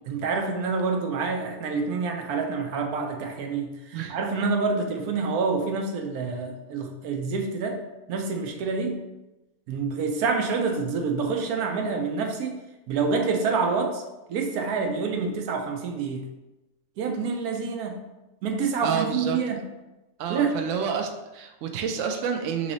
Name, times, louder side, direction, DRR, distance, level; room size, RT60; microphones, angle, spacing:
voice 1, 0.1-7.8 8.1-9.0 9.7-12.6 12.9-14.0 14.3-16.2 17.0-18.0 18.4-19.7 20.3-20.6, right 4 dB, 80° right, 3 dB, 1.1 m, -27 dB
voice 2, 18.8-19.4 20.2-22.7, right 7 dB, 65° right, 5 dB, 0.8 m, -29 dB
3.8 x 3.1 x 3.9 m, 1.0 s
omnidirectional pair, 1.6 m